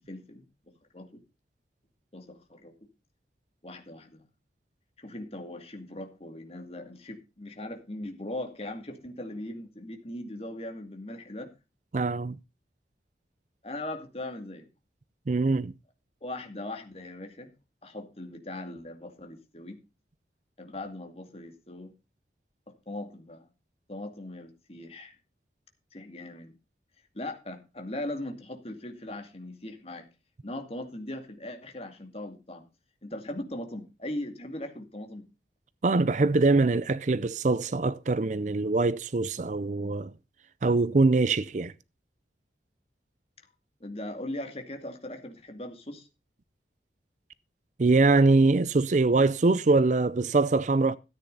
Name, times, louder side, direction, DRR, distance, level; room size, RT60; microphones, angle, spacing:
voice 1, 0.1-0.4 0.9-1.2 2.1-2.7 3.6-4.2 5.0-11.5 13.6-14.7 16.2-17.5 17.8-19.8 20.6-21.9 22.7-23.5 23.9-25.2 25.9-26.6 27.1-30.1 30.4-32.7 33.0-35.3 43.8-46.1, left 1 dB, 35° left, 2.4 m, -39 dB
voice 2, 11.9-12.4 15.3-15.7 35.8-40.1 40.6-41.7 47.8-51.0, right 3 dB, 45° right, 0.5 m, -23 dB
13.5 x 8.9 x 4.0 m
head